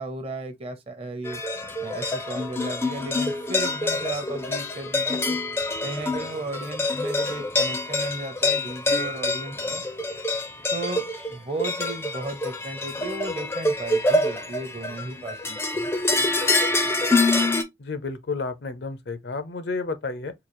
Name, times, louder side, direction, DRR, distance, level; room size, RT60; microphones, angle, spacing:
voice 1, 0.0-1.4 1.8-5.4 5.8-9.8 10.7-15.9, right 2 dB, 30° right, 0.7 m, -35 dB
sound 1, 1.2-17.6, left 2 dB, 15° left, 0.4 m, -26 dB
voice 2, 17.8-20.3, left 3 dB, 65° left, 0.5 m, -31 dB
3.8 x 2.4 x 3.0 m
head